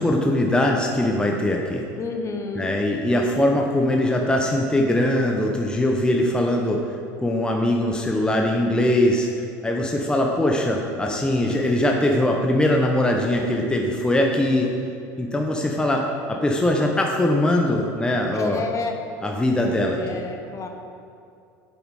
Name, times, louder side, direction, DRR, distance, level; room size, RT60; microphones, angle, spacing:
voice 1, 0.0-1.8 2.5-6.8 7.2-14.7 15.2-18.6 19.2-20.2, left 1 dB, 10° left, 1 dB, 0.9 m, -21 dB
voice 2, 2.0-2.7 18.3-19.0 19.8-20.7, left 4 dB, 35° left, 4 dB, 1.0 m, -30 dB
8.1 x 7.0 x 4.8 m, 2.5 s
supercardioid pair, 95°, 9 cm